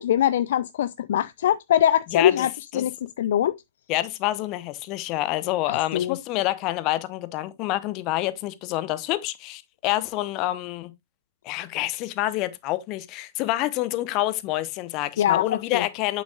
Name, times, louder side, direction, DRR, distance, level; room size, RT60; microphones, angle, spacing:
voice 1, 0.0-2.9 3.2-3.6 5.7-6.2 15.2-15.9, left 11 dB, 55° left, 0.3 m, -23 dB
voice 2, 2.1-2.5 2.7-2.9 3.9-10.9 11.4-16.2, left 16 dB, 35° left, 0.9 m, -27 dB
8.6 x 7.2 x 2.4 m
figure-of-eight pair, 105°, 0 cm